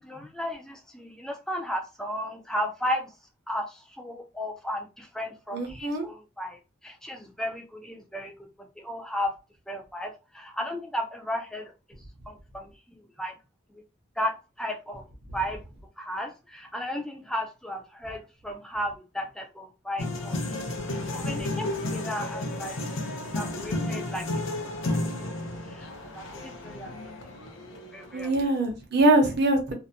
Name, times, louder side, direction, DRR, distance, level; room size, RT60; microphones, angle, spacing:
voice 1, 0.0-3.2 3.5-9.3 9.7-11.7 12.3-13.3 13.7-13.8 14.2-15.1 15.3-15.6 16.0-22.8 23.3-24.6 25.1-25.2 25.6-27.1 27.7-28.5, equal, ahead, 0.3 m, -35 dB
voice 2, 5.5-6.1 28.1-29.7, right 2 dB, 50° right, 0.7 m, -23 dB
sound 1, 20.0-28.1, left 2 dB, 70° left, 0.6 m, -32 dB
2.5 x 2.1 x 2.6 m
head